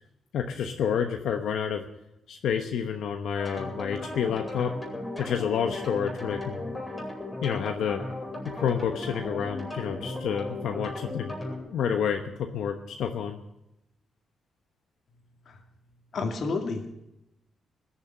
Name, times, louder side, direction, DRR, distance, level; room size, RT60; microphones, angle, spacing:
voice 1, 0.3-1.8 2.3-4.7 5.2-6.7 7.4-8.0 8.5-11.4 11.6-13.4, left 7 dB, 90° left, 5 dB, 1.0 m, -29 dB
sound 1, 3.4-11.6, left 2 dB, 20° left, 5.5 m, -36 dB
voice 2, 16.1-16.9, left 3 dB, 55° left, 5 dB, 2.4 m, -30 dB
20.0 x 7.2 x 8.8 m, 0.87 s
cardioid pair, 130°, 0 cm